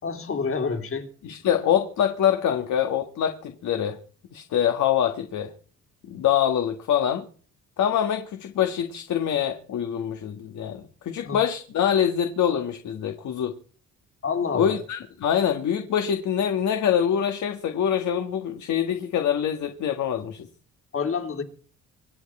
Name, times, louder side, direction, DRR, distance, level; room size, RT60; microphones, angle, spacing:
voice 1, 0.0-1.1 11.2-11.4 14.2-14.8 20.9-21.4, left 5 dB, 45° left, 2.8 m, -28 dB
voice 2, 1.2-4.0 4.3-5.5 6.1-7.2 7.8-13.5 14.5-20.5, left 9 dB, 70° left, 1.8 m, -24 dB
25.5 x 8.8 x 4.4 m
cardioid pair, 90°, 30 cm